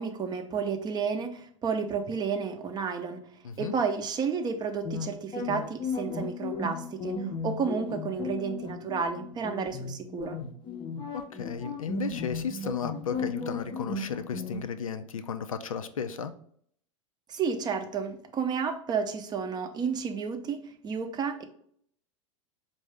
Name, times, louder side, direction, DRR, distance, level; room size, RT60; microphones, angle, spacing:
voice 1, 0.0-3.2 3.6-10.4 17.3-21.4, right 6 dB, 25° right, 6 dB, 0.6 m, -31 dB
sound 1, 4.8-14.6, left 3 dB, 30° left, 0.6 m, -35 dB
voice 2, 11.1-16.3, left 6 dB, 85° left, 9 dB, 0.4 m, -34 dB
4.6 x 2.6 x 3.3 m, 0.64 s
hypercardioid pair, 90°, 17 cm